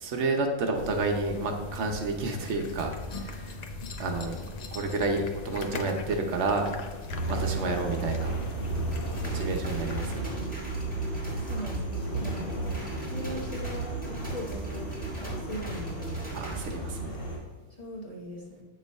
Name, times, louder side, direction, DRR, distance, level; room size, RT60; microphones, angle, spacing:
voice 1, 0.0-3.6 4.0-4.4 4.7-6.7 7.3-8.3 9.2-10.3 16.3-17.2, right 3 dB, 70° right, 3 dB, 1.0 m, -30 dB
sound 1, 0.7-10.2, left 2 dB, 55° left, 0.4 m, -39 dB
sound 2, 7.1-17.4, right 2 dB, 85° left, 2.0 m, -34 dB
sound 3, 8.7-16.7, right 1 dB, 5° left, 1.7 m, -39 dB
voice 2, 11.4-12.7 13.1-16.2 17.8-18.6, equal, 30° left, -3 dB, 1.2 m, -40 dB
8.1 x 3.1 x 5.3 m, 1.3 s
omnidirectional pair, 1.3 m